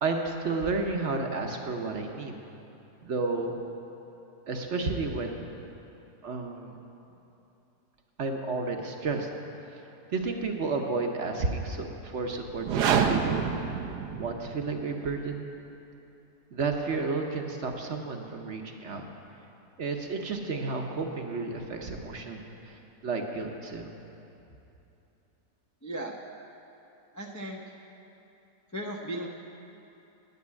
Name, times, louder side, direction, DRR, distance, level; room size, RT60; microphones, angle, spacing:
voice 1, 0.0-2.4 3.0-3.6 4.5-5.4 6.2-6.8 8.2-9.3 10.1-13.4 14.2-15.5 16.5-19.0 19.8-23.9, right 3 dB, 55° right, 3 dB, 1.0 m, -32 dB
sound 1, 12.5-14.6, right 7 dB, 90° right, 1.3 m, -27 dB
voice 2, 25.8-26.2 27.1-27.6 28.7-29.3, right 1 dB, 20° left, -1 dB, 0.4 m, -36 dB
9.4 x 8.6 x 9.6 m, 2.9 s
omnidirectional pair, 1.7 m